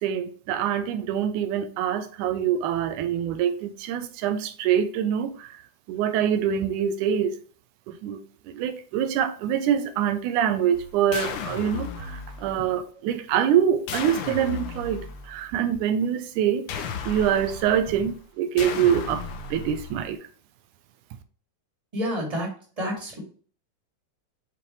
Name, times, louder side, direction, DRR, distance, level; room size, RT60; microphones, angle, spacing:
voice 1, 0.0-5.6 5.9-7.4 7.9-8.2 8.5-16.7 17.1-19.2 19.5-20.2, right 9 dB, 85° right, 2.1 m, -25 dB
sound 1, 10.7-12.7 13.9-15.5 16.7-18.2 18.6-20.1, left 6 dB, 85° left, 1.2 m, -35 dB
voice 2, 21.9-22.5 22.8-23.2, equal, 10° right, 2.3 m, -28 dB
7.0 x 4.9 x 3.1 m
omnidirectional pair, 3.5 m